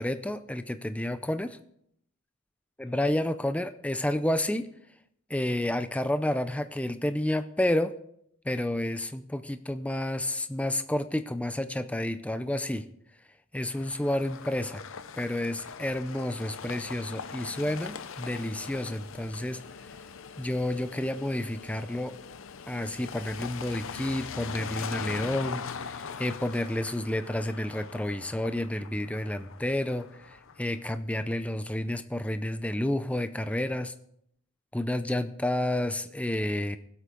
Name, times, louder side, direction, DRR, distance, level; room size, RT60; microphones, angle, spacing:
voice 1, 0.0-1.6 2.8-4.7 5.3-7.9 8.5-12.8 13.5-14.8 15.2-19.6 20.4-22.1 22.7-25.6 26.2-33.9 34.7-36.8, left 1 dB, 5° left, 10 dB, 0.4 m, -30 dB
sound 1, 13.7-30.7, left 6 dB, 60° left, 0.6 m, -41 dB
20.0 x 8.2 x 3.9 m, 0.72 s
head